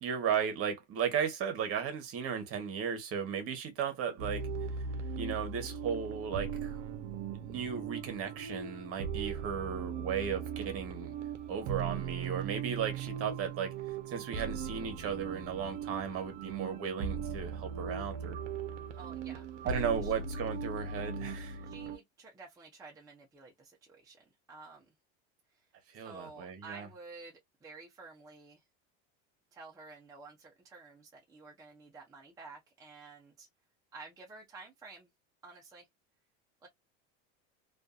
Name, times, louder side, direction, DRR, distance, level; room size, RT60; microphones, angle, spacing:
voice 1, 0.0-4.5 5.2-6.8 7.3-11.1 11.5-13.7 14.1-18.4 19.6-21.6 25.9-26.9, right 7 dB, 40° right, 1.0 m, -35 dB
sound 1, 4.2-22.0, right 6 dB, 60° right, 0.6 m, -39 dB
voice 2, 19.0-19.8 20.0-20.1 21.6-24.9 26.0-28.6 29.5-33.5 33.9-35.1 35.4-35.9 36.6-36.7, right 3 dB, 10° right, 0.5 m, -51 dB
2.5 x 2.4 x 2.2 m
supercardioid pair, 125°, 35 cm